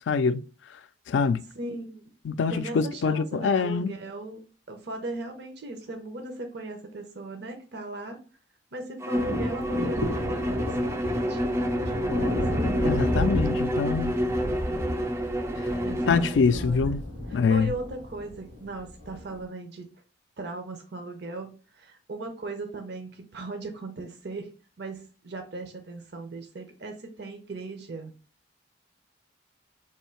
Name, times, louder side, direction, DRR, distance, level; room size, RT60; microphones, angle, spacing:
voice 1, 0.1-0.4 1.1-1.4 2.3-3.9 12.8-14.2 16.0-17.0 17.3-17.7, left 5 dB, 75° left, 0.3 m, -24 dB
voice 2, 1.5-2.0 2.5-4.4 4.7-8.2 8.7-12.9 15.8-16.9 17.3-19.9 20.4-24.5 24.8-28.1, right 2 dB, 60° right, 0.7 m, -38 dB
Bowed string instrument, 9.0-16.4, equal, 15° right, 0.3 m, -29 dB
sound 1, 9.2-19.4, left 1 dB, 85° right, 2.2 m, -32 dB
3.6 x 2.7 x 4.4 m
head